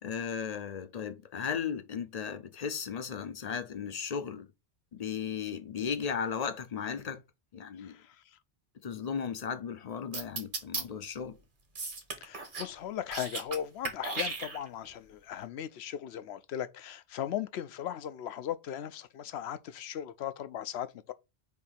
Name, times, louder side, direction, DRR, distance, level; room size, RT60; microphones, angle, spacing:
voice 1, 0.0-4.5 4.9-7.2 7.5-8.0 8.8-11.4, left 7 dB, 45° left, 0.6 m, -36 dB
voice 2, 7.8-8.2 12.2-21.1, left 10 dB, 75° left, 0.8 m, -38 dB
sound 1, 10.1-10.8 11.8-12.7 13.0-13.6 13.8-14.9, right 3 dB, 50° right, 1.4 m, -35 dB
7.3 x 2.7 x 5.7 m
omnidirectional pair, 1.1 m